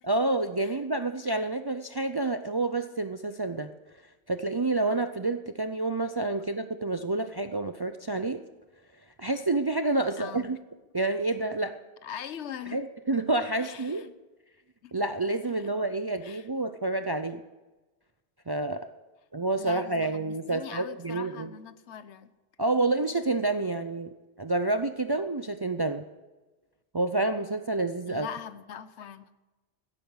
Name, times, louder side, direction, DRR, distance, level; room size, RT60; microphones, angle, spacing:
voice 1, 0.0-3.7 4.3-8.4 9.2-10.6 10.9-11.8 12.7-14.0 14.9-17.4 18.5-18.9 19.3-21.5 22.6-24.1 24.4-26.1 26.9-28.3, right 2 dB, 35° right, 9 dB, 0.4 m, -28 dB
voice 2, 10.2-10.5 12.0-12.8 13.6-14.1 14.8-14.9 15.5-15.7 16.2-16.5 19.6-22.3 28.1-29.3, left 8 dB, 85° left, 13 dB, 1.1 m, -42 dB
16.0 x 8.7 x 6.3 m, 1.2 s
omnidirectional pair, 1.1 m